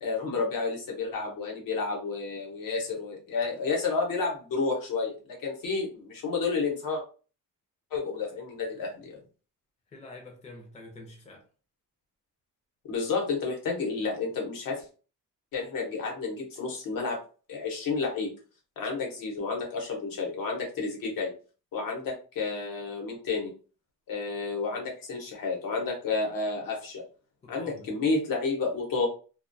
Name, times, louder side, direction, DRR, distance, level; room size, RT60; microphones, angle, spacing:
voice 1, 0.0-7.0 7.9-9.2 12.8-14.8 15.5-17.2 17.5-18.3 18.8-21.3 21.7-23.5 24.1-27.0 27.5-29.1, left 4 dB, 75° left, 0.9 m, -31 dB
voice 2, 9.9-11.5 27.4-28.0, left 2 dB, 20° left, 0.5 m, -46 dB
2.3 x 2.2 x 2.5 m
wide cardioid pair, 175°, 34 cm